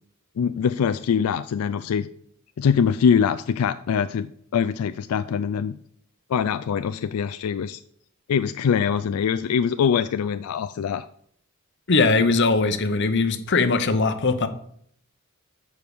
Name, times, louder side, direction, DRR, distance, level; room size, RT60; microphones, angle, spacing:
voice 1, 0.4-2.1 2.6-5.8 6.3-7.8 8.3-11.1, left 7 dB, 85° left, 12 dB, 0.3 m, -23 dB
voice 2, 11.9-14.5, left 3 dB, 55° left, 9 dB, 0.8 m, -20 dB
7.0 x 4.7 x 6.9 m, 0.66 s
head